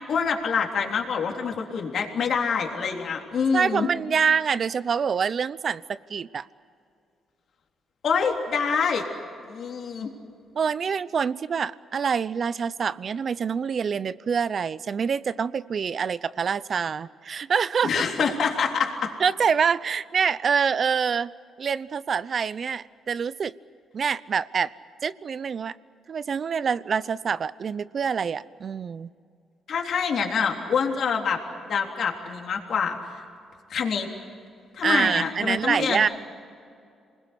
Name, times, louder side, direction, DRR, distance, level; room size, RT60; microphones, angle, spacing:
voice 1, 0.1-3.9 8.0-9.1 9.4-10.1 17.8-19.1 29.7-33.2 33.7-34.1 34.7-36.1, left 6 dB, 60° left, 2 dB, 3.5 m, -26 dB
voice 2, 3.5-6.5 10.5-17.9 19.2-21.3 21.6-23.5 23.9-24.7 25.0-25.7 26.1-29.1 34.8-36.1, right 6 dB, 50° right, 18 dB, 0.7 m, -26 dB
28.0 x 20.5 x 8.2 m, 2.4 s
cardioid pair, 90°, 0 cm